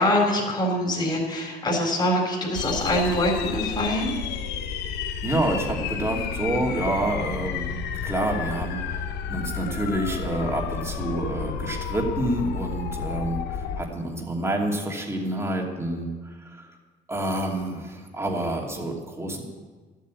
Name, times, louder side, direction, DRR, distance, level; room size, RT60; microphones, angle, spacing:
voice 1, 0.0-4.1, left 1 dB, 25° left, -2 dB, 3.8 m, -24 dB
sound 1, 2.5-13.8, left 7 dB, 85° left, 0.9 m, -31 dB
voice 2, 5.2-7.8 8.0-16.7 17.1-19.4, right 1 dB, 15° right, 0 dB, 2.7 m, -28 dB
12.5 x 8.4 x 8.5 m, 1.4 s
cardioid pair, 110°, 17 cm